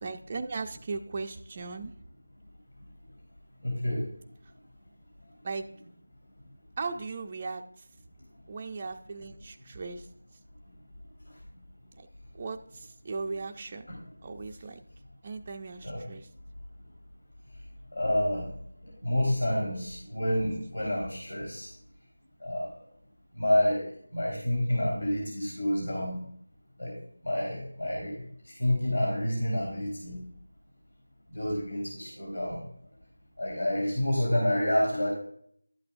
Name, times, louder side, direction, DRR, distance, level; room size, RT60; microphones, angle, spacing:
voice 1, 0.0-1.9 5.4-5.7 6.8-7.6 8.5-10.1 12.3-13.9 14.2-14.8 15.2-16.3, right 4 dB, 25° right, 3 dB, 0.5 m, -37 dB
voice 2, 3.6-4.0 13.9-14.0 15.8-16.1 17.9-18.4 18.8-21.7 22.4-22.7 23.3-23.9 24.1-26.2 26.8-26.9 27.2-28.1 28.6-30.2 31.3-32.6 33.4-35.1, left 1 dB, 70° left, -3 dB, 4.1 m, -28 dB
12.0 x 8.4 x 2.5 m, 0.63 s
figure-of-eight pair, 170°, 0 cm